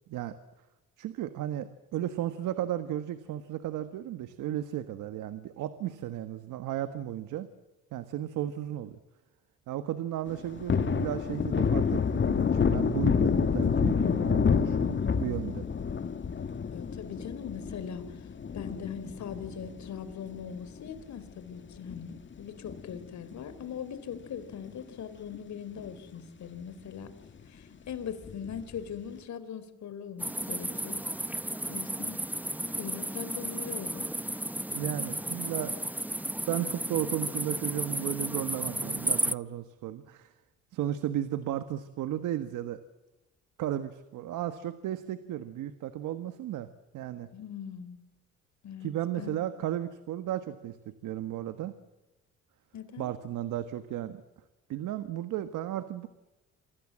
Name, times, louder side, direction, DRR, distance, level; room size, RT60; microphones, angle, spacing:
voice 1, 1.0-7.5 7.9-9.0 9.7-15.7 34.7-35.7 36.5-40.3 40.7-42.8 43.6-46.7 46.9-47.3 48.8-51.7 53.0-54.2 54.7-56.1, right 12 dB, 85° right, 11 dB, 1.5 m, -34 dB
Thunder, 10.3-21.0 21.4-21.5 21.8-23.3 23.6-23.8 24.1-24.9 25.3-25.4 25.8-25.9 28.2-28.8, left 6 dB, 40° left, 1.9 m, -29 dB
voice 2, 16.7-18.3 18.5-27.1 27.5-31.1 31.7-32.2 32.8-34.1 47.3-48.0 48.6-49.4 52.7-53.1, left 8 dB, 65° left, 12 dB, 4.0 m, -41 dB
sound 1, 30.2-39.3, right 1 dB, 5° right, 0.9 m, -33 dB
28.0 x 25.5 x 7.6 m, 1.1 s
cardioid pair, 90°, 30 cm